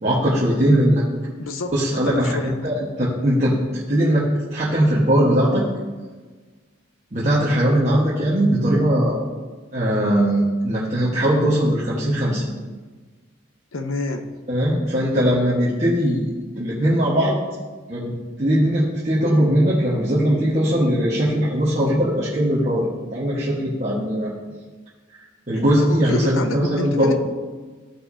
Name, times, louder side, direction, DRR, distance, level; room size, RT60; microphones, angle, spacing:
voice 1, 0.0-1.0 1.7-5.7 7.1-9.2 9.7-12.5 14.5-16.3 16.6-17.4 17.9-24.3 25.5-27.1, equal, 35° right, -8 dB, 1.3 m, -20 dB
voice 2, 1.4-2.7 13.7-14.3 25.5-27.1, left 2 dB, 90° left, 7 dB, 0.8 m, -29 dB
14.5 x 5.5 x 2.8 m, 1.3 s
head